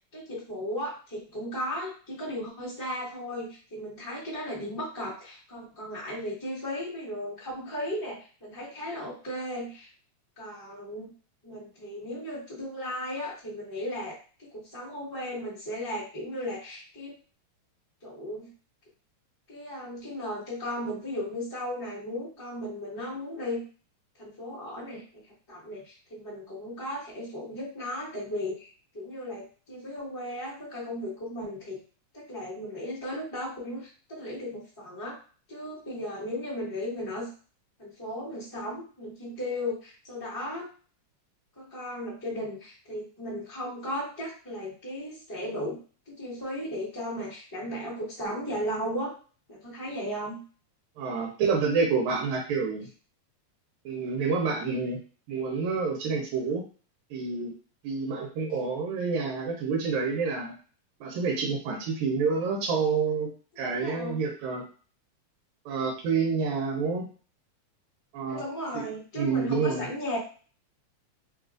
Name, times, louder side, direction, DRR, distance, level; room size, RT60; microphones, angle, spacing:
voice 1, 0.1-9.9 10.4-11.1 11.4-17.1 18.0-18.5 19.5-23.6 24.2-25.2 25.5-31.8 32.1-35.2 35.5-37.3 37.8-40.7 41.6-45.8 46.1-49.1 49.5-50.4 63.6-64.2 68.3-70.2, left 1 dB, 15° left, -8 dB, 0.8 m, -36 dB
voice 2, 51.0-52.9 53.9-55.0 55.3-56.6 57.1-57.5 57.8-60.5 61.0-64.7 65.7-67.1 68.1-68.4 68.7-68.9 69.2-69.9, right 5 dB, 80° right, 1 dB, 2.0 m, -28 dB
4.5 x 2.4 x 2.4 m, 0.38 s
omnidirectional pair, 3.3 m